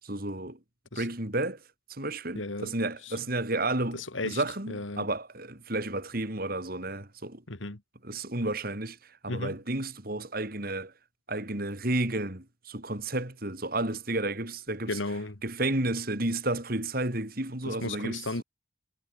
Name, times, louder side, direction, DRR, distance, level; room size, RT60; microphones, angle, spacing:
voice 1, 0.0-0.6 1.0-1.6 1.9-7.4 8.0-10.9 11.3-15.0 15.4-18.4, right 2 dB, 50° right, 3.9 m, -32 dB
voice 2, 2.4-2.7 3.0-3.1 3.9-5.1 7.5-7.8 9.3-9.6 14.9-15.4 17.6-18.4, left 2 dB, 85° left, 2.1 m, -35 dB
head